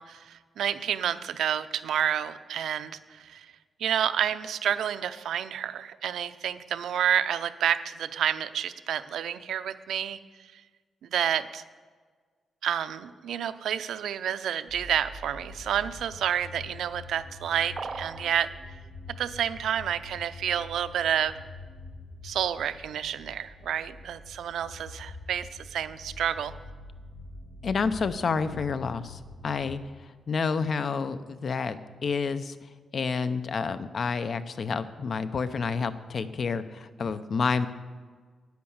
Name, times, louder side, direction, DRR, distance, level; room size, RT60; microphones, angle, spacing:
voice 1, 0.0-3.5 3.8-10.2 10.5-10.6 11.1-11.6 12.6-18.5 19.2-21.3 22.2-26.5, right 9 dB, 80° right, 12 dB, 0.5 m, -29 dB
sound 1, 14.7-29.8, left 2 dB, 15° left, 3.0 m, -45 dB
sound 2, 17.8-18.3, right 4 dB, 30° right, 0.4 m, -37 dB
voice 2, 27.6-29.8 30.3-32.6 32.9-37.7, left 5 dB, 45° left, 12 dB, 0.6 m, -29 dB
10.5 x 9.6 x 7.1 m, 1.5 s
wide cardioid pair, 145°, 0 cm